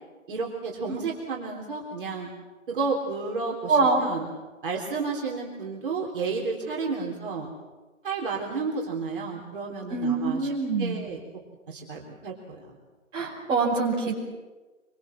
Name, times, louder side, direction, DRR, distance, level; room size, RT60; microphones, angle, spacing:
voice 1, 0.3-2.3 2.7-4.3 4.6-7.5 8.0-10.5 10.8-11.2 11.7-12.8, right 4 dB, 40° right, -2 dB, 3.8 m, -31 dB
voice 2, 3.7-4.0 9.9-11.0 13.1-14.1, right 4 dB, 10° right, -7 dB, 5.4 m, -24 dB
26.5 x 25.0 x 7.5 m, 1.2 s
hypercardioid pair, 170°, 41 cm